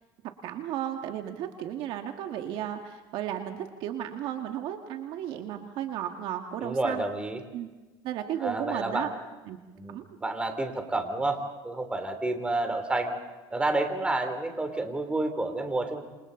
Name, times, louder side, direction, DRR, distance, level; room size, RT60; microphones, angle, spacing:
voice 1, 0.4-7.1 7.5-7.7 8.0-9.1 9.5-9.6 9.9-10.1, right 11 dB, 60° right, 4 dB, 2.0 m, -34 dB
voice 2, 6.6-7.4 8.4-9.2 9.8-13.2 13.5-16.0, right 2 dB, 10° right, 6 dB, 3.1 m, -30 dB
28.0 x 27.5 x 4.0 m, 1.2 s
cardioid pair, 130°, 10 cm